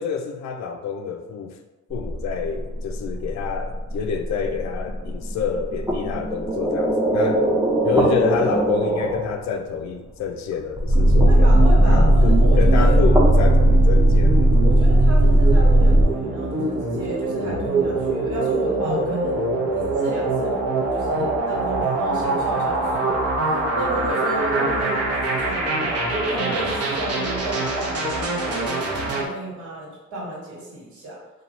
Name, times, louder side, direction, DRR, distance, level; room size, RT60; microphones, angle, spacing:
voice 1, 0.0-1.6 1.9-7.4 7.8-14.6, left 6 dB, 65° left, 5 dB, 0.5 m, -28 dB
sound 1, 1.9-9.3 10.8-16.0, right 1 dB, 10° right, 0.6 m, -17 dB
sound 2, 10.9-29.2, right 2 dB, 55° right, 0.8 m, -25 dB
voice 2, 11.2-13.1 14.5-19.4 19.7-28.7 29.0-31.2, right 2 dB, 70° right, -4 dB, 1.4 m, -32 dB
2.9 x 2.3 x 4.1 m, 1.2 s
cardioid pair, 90°, 30 cm